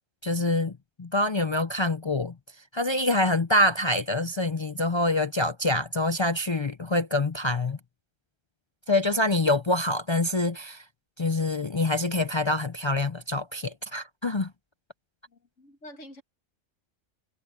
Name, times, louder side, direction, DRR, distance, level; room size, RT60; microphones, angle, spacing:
voice 1, 0.2-0.7 1.0-2.3 2.7-7.8 8.9-10.8 11.2-14.5, left 2 dB, 45° left, 0.3 m, -25 dB
voice 2, 15.3-16.2, equal, 75° left, 2.5 m, -47 dB
omnidirectional pair, 1.3 m